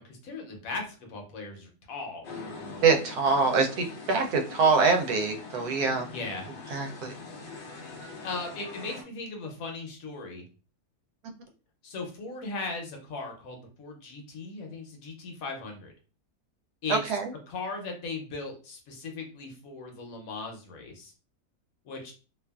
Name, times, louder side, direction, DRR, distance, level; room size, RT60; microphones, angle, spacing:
voice 1, 0.0-2.2 6.1-6.5 7.9-10.4 11.8-15.9 16.8-17.0 17.5-21.1 21.8-22.1, left 3 dB, 70° left, 2 dB, 1.1 m, -38 dB
sound 1, 2.2-9.0, left 3 dB, 55° left, 0.6 m, -43 dB
voice 2, 2.8-6.1 6.7-7.2 16.9-17.3, right 4 dB, 85° right, 4 dB, 1.1 m, -24 dB
2.7 x 2.4 x 2.2 m, 0.36 s
omnidirectional pair, 1.6 m